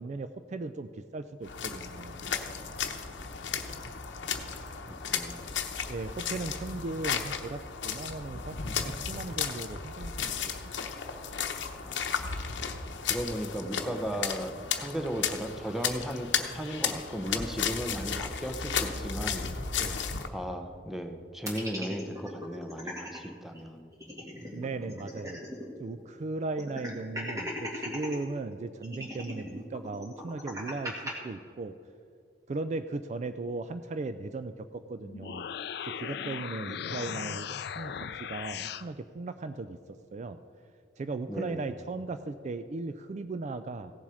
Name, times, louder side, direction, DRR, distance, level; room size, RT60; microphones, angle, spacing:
voice 1, 0.0-2.2 5.9-8.6 8.8-10.7 19.8-20.0 24.5-25.4 25.8-31.8 32.5-35.5 35.8-40.4 41.0-43.9, right 3 dB, 40° right, 11 dB, 0.3 m, -37 dB
sound 1, 1.4-20.3, left 7 dB, 80° left, 0.8 m, -34 dB
voice 2, 4.8-5.5 11.8-12.3 13.1-19.5 20.3-23.9 25.6-25.7 36.6-36.8 41.3-41.7, equal, ahead, 5 dB, 0.8 m, -36 dB
sound 2, 21.5-23.2 23.6-23.7 23.9-25.7 26.0-26.1 26.6-28.2 28.8-31.1, equal, 20° right, 2.1 m, -38 dB
sound 3, 35.0-38.9, left 8 dB, 60° left, 0.4 m, -37 dB
16.5 x 7.2 x 4.9 m, 2.4 s
head